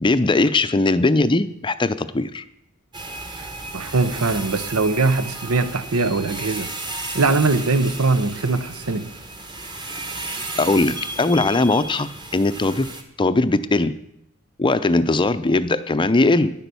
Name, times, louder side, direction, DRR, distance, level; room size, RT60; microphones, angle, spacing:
voice 1, 0.0-2.4 10.2-10.3 10.6-12.9 13.2-13.9 14.6-16.5, left 2 dB, 20° left, 0.5 m, -19 dB
sound 1, 2.9-13.0, right 2 dB, 20° right, 1.4 m, -33 dB
voice 2, 3.4-6.7 7.1-9.1, right 3 dB, 85° right, 0.9 m, -21 dB
10.5 x 10.0 x 6.9 m
head